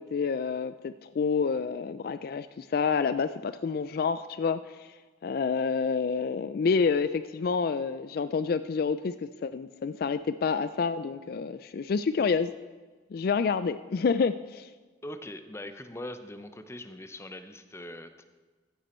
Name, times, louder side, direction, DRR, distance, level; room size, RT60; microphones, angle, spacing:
voice 1, 0.0-5.0 5.2-12.5 13.1-14.7, left 5 dB, 50° left, 13 dB, 0.3 m, -28 dB
voice 2, 15.0-18.2, left 1 dB, 15° left, 9 dB, 0.7 m, -41 dB
15.0 x 10.5 x 4.3 m, 1.3 s
head